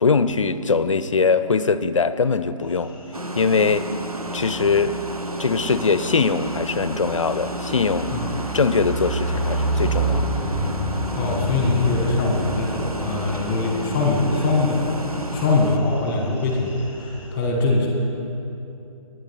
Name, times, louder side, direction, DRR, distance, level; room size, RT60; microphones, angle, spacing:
voice 1, 0.0-2.9 3.4-3.9 4.3-5.0 5.4-8.2 8.5-10.3 10.6-10.7, left 4 dB, 60° left, 13 dB, 0.7 m, -21 dB
sound 1, 2.7-17.3, right 1 dB, 5° right, 2.0 m, -30 dB
sound 2, 3.1-15.8, right 1 dB, 90° right, 0.9 m, -32 dB
voice 2, 11.1-17.9, left 3 dB, 15° left, 0 dB, 1.7 m, -22 dB
21.5 x 9.7 x 4.2 m, 2.9 s
figure-of-eight pair, 140°, 18 cm